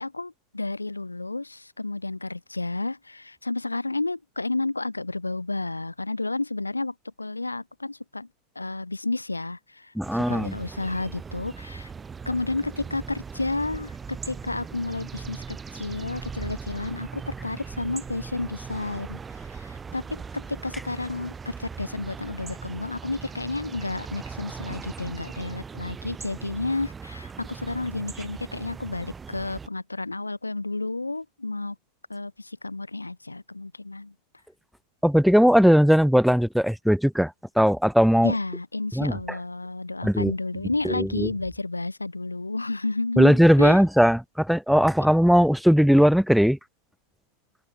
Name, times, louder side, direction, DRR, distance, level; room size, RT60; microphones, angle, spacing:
voice 1, 0.0-8.3 8.5-9.9 10.3-11.9 12.2-31.7 32.1-34.1 38.2-43.8, left 2 dB, 80° left, 1.6 m, -31 dB
voice 2, 10.0-10.6 35.0-38.3 38.9-39.4 40.0-40.3 40.8-41.3 43.2-46.6, equal, ahead, 0.5 m, -19 dB
sound 1, 10.0-29.7, right 5 dB, 15° right, 2.4 m, -39 dB
figure-of-eight pair, 90°, 0 cm